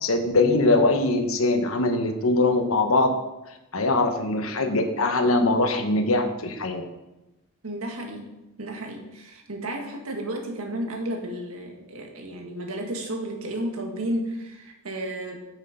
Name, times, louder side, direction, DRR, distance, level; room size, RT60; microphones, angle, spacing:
voice 1, 0.0-3.1 3.7-6.8, left 2 dB, 80° left, 6 dB, 1.1 m, -22 dB
voice 2, 7.6-8.3 8.6-15.4, right 1 dB, 90° right, 2 dB, 1.7 m, -32 dB
8.7 x 6.4 x 5.1 m, 0.97 s
head